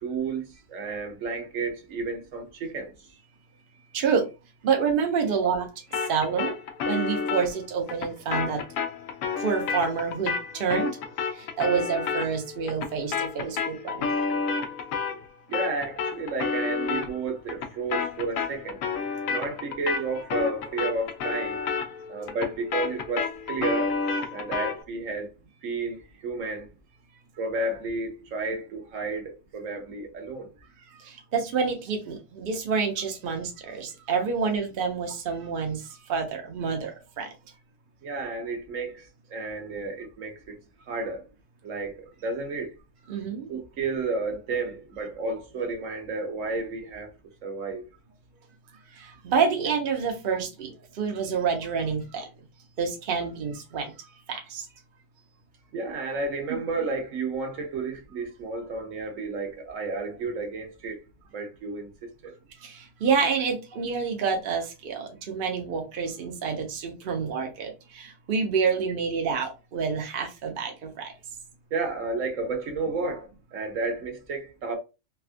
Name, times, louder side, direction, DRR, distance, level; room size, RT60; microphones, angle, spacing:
voice 1, 0.0-2.9 15.5-18.8 19.3-21.6 22.1-24.0 24.3-25.3 25.6-26.7 27.4-30.5 38.0-40.6 40.9-41.3 41.6-42.7 43.5-47.1 47.4-47.8 55.7-61.0 61.3-62.3 71.7-74.8, right 3 dB, 75° right, 1.1 m, -32 dB
voice 2, 3.9-4.3 4.6-6.6 6.8-8.6 9.4-11.0 11.3-14.1 30.8-37.3 43.1-43.5 48.9-52.3 52.8-54.7 56.5-56.6 62.6-71.1, right 6 dB, 50° right, 0.8 m, -28 dB
sound 1, 5.9-15.3 15.5-24.8, left 5 dB, 85° left, 1.0 m, -30 dB
3.4 x 2.3 x 2.5 m
omnidirectional pair, 1.4 m